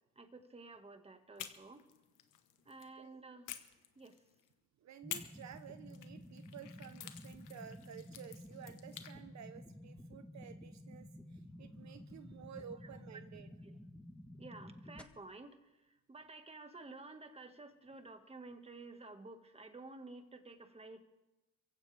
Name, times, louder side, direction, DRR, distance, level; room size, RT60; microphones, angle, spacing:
voice 1, 0.2-1.8 2.7-3.5 4.0-4.2 13.6-13.8 14.4-15.6 16.1-21.0, right 3 dB, 20° right, 7 dB, 1.7 m, -52 dB
sound 1, 1.4-2.9 3.5-4.5 5.1-9.1, left 11 dB, 85° left, 1.3 m, -50 dB
voice 2, 4.8-13.5, right 8 dB, 65° right, 10 dB, 1.0 m, -53 dB
sound 2, 5.0-15.0, left 1 dB, 5° left, 1.2 m, -52 dB
23.0 x 16.0 x 3.5 m, 1.0 s
cardioid pair, 90°, 30 cm